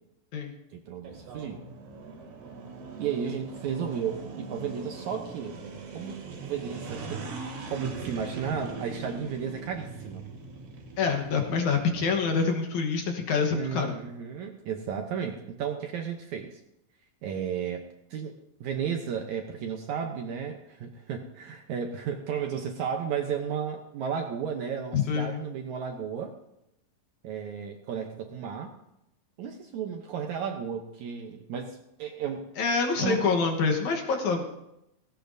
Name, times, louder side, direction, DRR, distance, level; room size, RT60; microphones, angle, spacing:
voice 1, 0.7-1.6 3.0-5.6 5.9-7.3 7.7-10.2 13.5-16.6 17.2-26.4 27.2-28.7 29.4-32.5 33.0-33.4, right 7 dB, 70° right, 3 dB, 1.9 m, -33 dB
sound 1, 1.0-12.4, right 4 dB, 90° right, 4.2 m, -41 dB
voice 2, 11.0-13.9 24.9-25.4 32.6-34.4, left 5 dB, 60° left, 3 dB, 2.3 m, -26 dB
17.5 x 17.0 x 2.7 m, 0.85 s
omnidirectional pair, 4.2 m